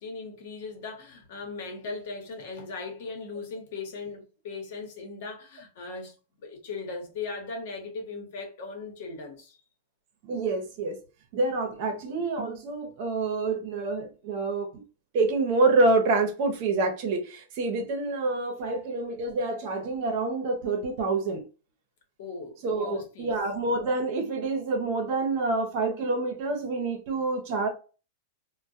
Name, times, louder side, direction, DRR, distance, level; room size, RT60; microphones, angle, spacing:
voice 1, 0.0-9.6 22.2-23.3, left 4 dB, 65° left, 1.0 m, -38 dB
voice 2, 10.2-11.0 11.3-14.7 15.1-21.4 22.6-27.7, right 3 dB, 55° right, 0.7 m, -27 dB
2.2 x 2.2 x 2.6 m
supercardioid pair, 135°, 0 cm